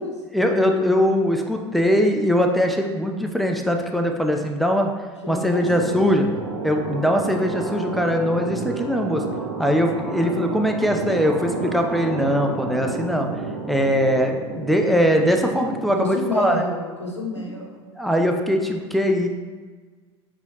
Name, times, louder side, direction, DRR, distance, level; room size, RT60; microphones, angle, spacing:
voice 1, 0.3-4.9 5.3-6.2 6.6-9.2 9.6-13.3 13.7-16.6 17.5-17.6 18.0-19.3, equal, ahead, 2 dB, 0.4 m, -21 dB
voice 2, 5.2-6.2 15.9-17.8, left 1 dB, 90° left, 0 dB, 0.6 m, -29 dB
sound 1, 5.6-15.9, right 4 dB, 70° right, 0.6 m, -31 dB
5.3 x 3.0 x 2.8 m, 1.4 s
figure-of-eight pair, 75°, 15 cm